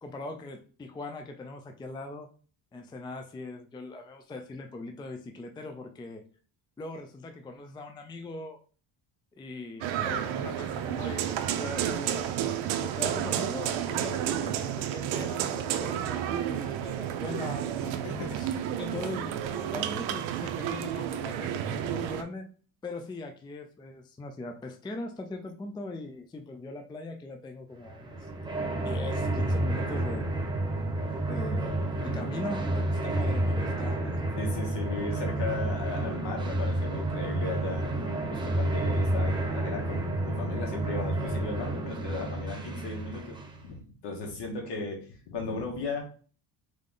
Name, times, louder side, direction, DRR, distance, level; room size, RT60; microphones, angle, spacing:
voice 1, 0.0-2.3 2.7-6.2 6.8-8.6 9.4-12.2 12.7-18.0 18.3-22.4 22.8-28.3 28.8-30.3 31.3-34.2, left 2 dB, 10° left, 5 dB, 0.4 m, -40 dB
sound 1, 9.8-22.2, right 10 dB, 85° right, 0.7 m, -31 dB
voice 2, 18.0-18.4 34.4-37.9 38.3-46.0, left 3 dB, 65° left, 1 dB, 1.8 m, -36 dB
sound 2, 27.9-43.6, right 1 dB, 10° right, 0.7 m, -30 dB
3.8 x 3.6 x 3.7 m, 0.40 s
cardioid pair, 130°, 44 cm